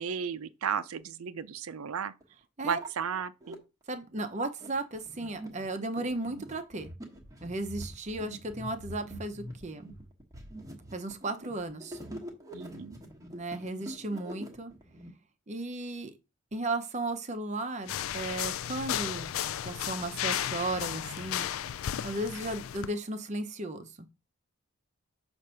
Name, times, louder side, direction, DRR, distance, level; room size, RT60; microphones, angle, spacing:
voice 1, 0.0-2.1 2.6-3.6 12.5-13.0, right 7 dB, 90° right, 0.5 m, -34 dB
sound 1, 1.4-1.5 2.2-2.3 2.6-3.6 4.2-15.1, equal, 15° right, 1.0 m, -44 dB
voice 2, 3.9-6.9 7.4-9.9 10.9-12.0 13.3-14.7 15.5-16.1 16.5-19.3 19.6-21.5 22.0-24.1, right 2 dB, 35° right, 0.6 m, -35 dB
sound 2, 17.9-22.9, left 11 dB, 75° left, 0.3 m, -34 dB
6.4 x 2.6 x 5.5 m
head